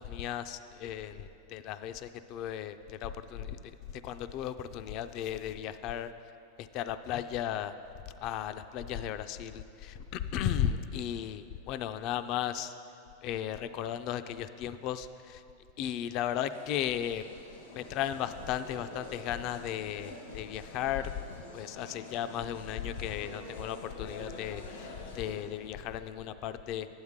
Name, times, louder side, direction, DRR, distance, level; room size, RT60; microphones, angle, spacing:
voice 1, 0.0-6.1 6.6-7.7 8.2-12.7 13.2-15.4 15.8-17.2 17.7-21.1 21.5-24.9 25.1-26.9, left 10 dB, 40° left, 11 dB, 0.3 m, -35 dB
sound 1, 16.4-25.6, left 1 dB, 85° left, 1.6 m, -47 dB
11.5 x 9.5 x 3.6 m, 2.7 s
supercardioid pair, 150°, 0 cm